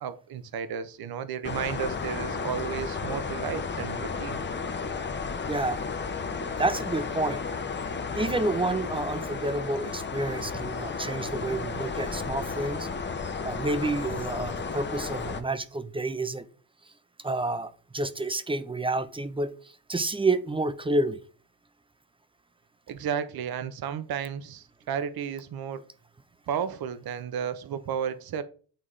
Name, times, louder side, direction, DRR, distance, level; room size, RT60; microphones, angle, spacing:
voice 1, 0.0-4.4 22.9-25.8 26.5-28.4, right 8 dB, 50° right, 0.7 m, -33 dB
sound 1, 1.4-15.4, left 5 dB, 20° left, 0.7 m, -33 dB
voice 2, 5.5-5.8 6.3-7.4 8.1-12.9 13.4-16.5 17.2-19.5 19.9-21.2, right 2 dB, 10° right, 0.4 m, -29 dB
8.9 x 3.5 x 3.2 m
cardioid pair, 80°, 49 cm